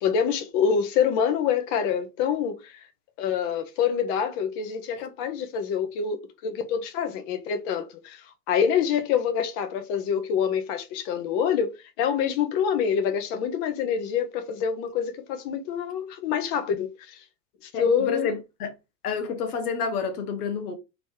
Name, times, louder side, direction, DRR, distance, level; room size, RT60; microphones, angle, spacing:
voice 1, 0.0-2.8 3.2-17.2 17.6-18.3, left 7 dB, 50° left, 1.2 m, -26 dB
voice 2, 17.7-18.3 18.6-18.7 19.0-20.7, left 5 dB, 70° left, 1.3 m, -29 dB
3.9 x 3.1 x 3.6 m
hypercardioid pair, 100°, 47 cm